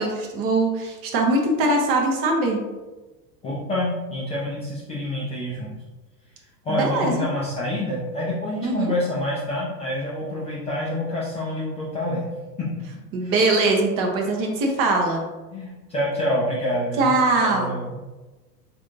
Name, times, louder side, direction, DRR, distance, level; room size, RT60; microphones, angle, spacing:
voice 1, 0.0-2.6 6.7-7.3 8.6-8.9 13.1-15.2 17.0-17.8, right 2 dB, 30° right, 1 dB, 0.6 m, -21 dB
voice 2, 3.4-5.7 6.6-12.3 12.6-12.7 13.2-13.3 15.5-17.1 17.4-17.9, left 1 dB, 15° left, -7 dB, 0.4 m, -27 dB
4.0 x 2.5 x 3.1 m, 1.2 s
figure-of-eight pair, 95°, 50 cm